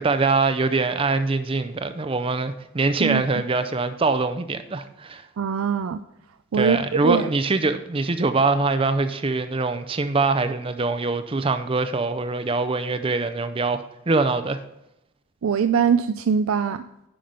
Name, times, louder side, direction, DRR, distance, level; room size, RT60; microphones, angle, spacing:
voice 1, 0.0-5.3 6.5-14.6, right 3 dB, 25° right, 0.5 m, -23 dB
voice 2, 5.4-6.0 6.5-6.8 7.0-7.3 15.4-16.8, right 6 dB, 85° right, 0.4 m, -22 dB
10.0 x 5.9 x 5.3 m
head